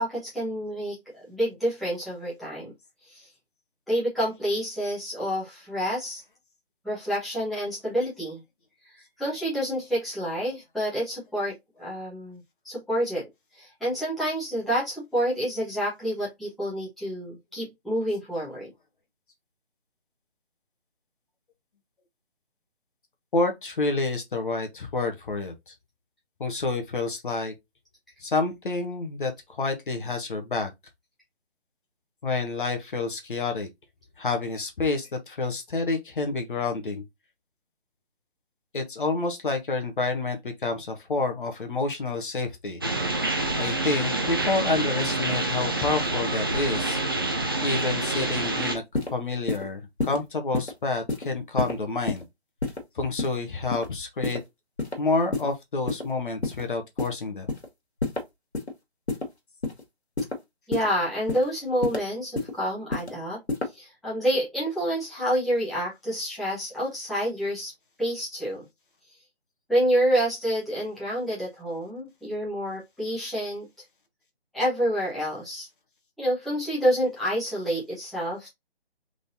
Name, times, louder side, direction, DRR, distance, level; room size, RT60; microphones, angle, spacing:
voice 1, 0.0-2.7 3.1-3.3 3.9-6.2 6.8-8.4 8.8-12.4 12.6-13.3 13.6-18.7 60.7-63.4 63.7-67.7 68.0-68.6 69.7-73.6 74.5-75.7 76.2-78.5, equal, ahead, 1.2 m, -28 dB
voice 2, 23.3-25.7 26.4-27.5 28.2-30.7 32.2-33.7 34.2-37.0 38.7-42.8 43.6-47.0 47.6-48.8 49.1-52.2 52.9-54.4 55.0-57.5, left 3 dB, 50° left, 1.1 m, -28 dB
sound 1, 42.8-48.8, right 2 dB, 20° right, 0.5 m, -27 dB
sound 2, 48.9-49.1 49.5-49.6 50.0-50.2 50.5-50.7 51.1-51.2 51.6-51.7 52.1-52.2 52.6-52.8 53.2-53.4 53.7-53.9 54.2-54.4 54.8-55.0 55.3-55.5 55.9-56.0 56.4-56.6 57.0-57.1 57.5-57.7 58.0-58.2 58.5-58.7 59.1-59.2 59.6-59.8 60.2-60.3 60.7-60.9 61.3-61.4 61.8-62.0 62.4-62.5 62.9-63.1 63.5-63.7, left 2 dB, 90° left, 1.9 m, -28 dB
3.8 x 3.6 x 2.7 m
figure-of-eight pair, 150°, 32 cm